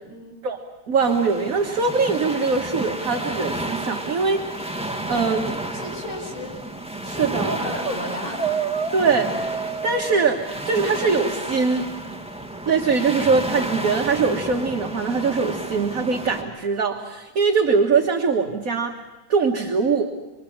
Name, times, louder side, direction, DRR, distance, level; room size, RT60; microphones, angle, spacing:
voice 1, 0.0-0.3 5.6-6.6 7.0-8.7 19.7-19.8, equal, 35° left, 0 dB, 7.0 m, -34 dB
voice 2, 0.9-4.6 5.1-5.6 7.2-7.5 8.9-11.9 12.7-18.9 19.3-20.1, right 4 dB, 45° right, 2 dB, 1.8 m, -22 dB
sound 1, 1.0-16.4, right 1 dB, 5° right, 1.5 m, -32 dB
sound 2, 7.8-8.0 8.3-11.1, right 5 dB, 25° right, 1.2 m, -29 dB
26.0 x 25.5 x 7.2 m, 1.1 s
omnidirectional pair, 2.2 m